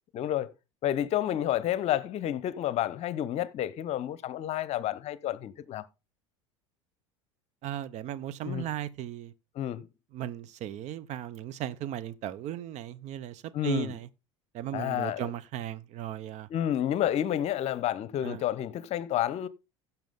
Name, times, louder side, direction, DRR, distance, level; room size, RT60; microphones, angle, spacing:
voice 1, 0.1-0.5 0.8-5.8 8.4-8.7 9.5-9.9 13.5-13.9 14.7-15.3 16.5-19.5, left 11 dB, 45° left, 0.9 m, -30 dB
voice 2, 7.6-9.3 10.1-14.1 14.5-16.5 18.2-18.4, right 11 dB, 45° right, 0.8 m, -36 dB
15.5 x 5.9 x 3.7 m
hypercardioid pair, 80°, 16 cm